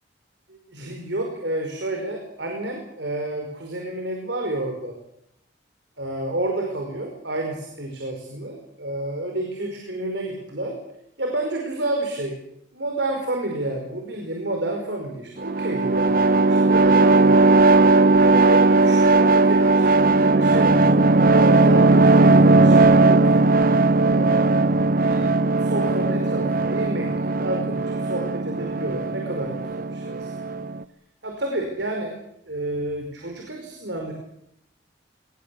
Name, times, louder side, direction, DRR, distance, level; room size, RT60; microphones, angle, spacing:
voice 1, 0.5-5.0 6.0-10.8 11.2-12.4 12.7-17.4 17.9-19.9 20.2-23.5 24.0-25.2 25.6-30.6 31.2-32.1 32.5-34.1, right 1 dB, 70° right, 2 dB, 5.1 m, -30 dB
sound 1, 15.4-30.8, right 3 dB, 50° right, 0.8 m, -17 dB
23.5 x 20.5 x 8.5 m, 0.77 s
head